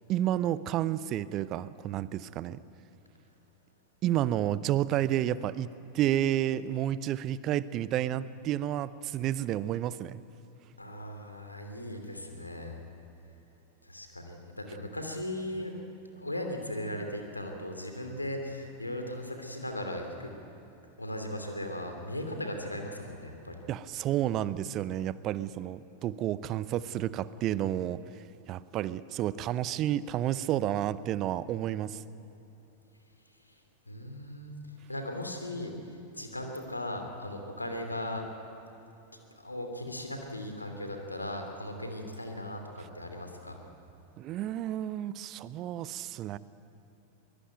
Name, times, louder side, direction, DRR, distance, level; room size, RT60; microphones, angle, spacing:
voice 1, 0.1-2.6 4.0-5.7 5.9-10.2 23.7-28.0 28.5-32.0 44.2-46.4, right 12 dB, 35° right, 18 dB, 0.7 m, -30 dB
voice 2, 10.8-12.8 13.8-15.7 16.2-20.3 21.0-23.6 33.5-33.6 33.9-34.5 34.9-38.2 39.4-43.7, left 1 dB, 85° left, 4 dB, 2.9 m, -38 dB
23.0 x 21.5 x 9.1 m, 3.0 s
figure-of-eight pair, 90°, 0 cm